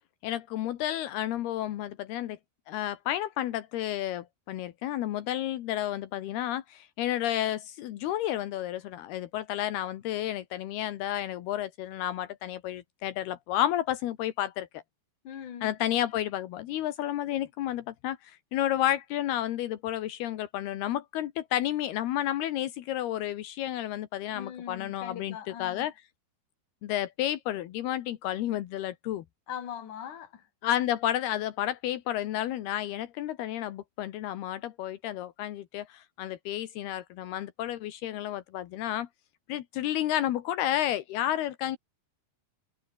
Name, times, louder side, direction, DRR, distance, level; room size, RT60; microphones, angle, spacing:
voice 1, 0.2-2.4 2.7-14.8 15.6-25.9 26.8-29.2 30.6-39.1 39.5-41.8, left 12 dB, 80° left, 3.3 m, -31 dB
voice 2, 15.2-15.7 24.3-25.9 29.5-30.5, left 9 dB, 55° left, 3.8 m, -41 dB
omnidirectional pair, 4.6 m